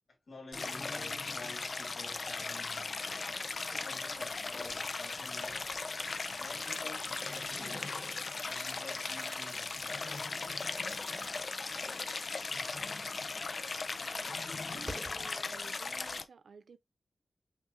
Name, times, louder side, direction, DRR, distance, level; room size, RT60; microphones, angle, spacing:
voice 1, 0.3-3.1 3.6-5.7 6.4-7.9 8.5-10.3, left 2 dB, 70° left, 1.9 m, -50 dB
Stream, 0.5-16.2, left 3 dB, 55° left, 0.4 m, -38 dB
sound 1, 1.7-15.3, right 1 dB, 15° right, 0.8 m, -53 dB
voice 2, 14.7-16.8, right 5 dB, 85° right, 0.4 m, -54 dB
5.8 x 2.5 x 2.7 m
wide cardioid pair, 110°, 0 cm